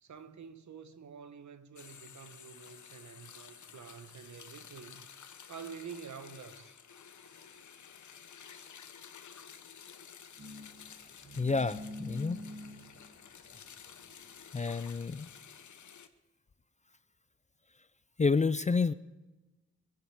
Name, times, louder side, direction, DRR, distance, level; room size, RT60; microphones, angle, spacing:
voice 1, 0.0-5.1 5.5-6.7, right 6 dB, 65° right, 1.1 m, -48 dB
sound 1, 1.8-16.1, left 7 dB, 70° left, 1.0 m, -52 dB
sound 2, 10.4-15.3, left 1 dB, 35° right, 1.5 m, -47 dB
voice 2, 11.4-12.4 14.5-15.3 18.2-18.9, left 4 dB, 25° left, 0.4 m, -29 dB
22.0 x 11.5 x 4.8 m
wide cardioid pair, 150°, 30 cm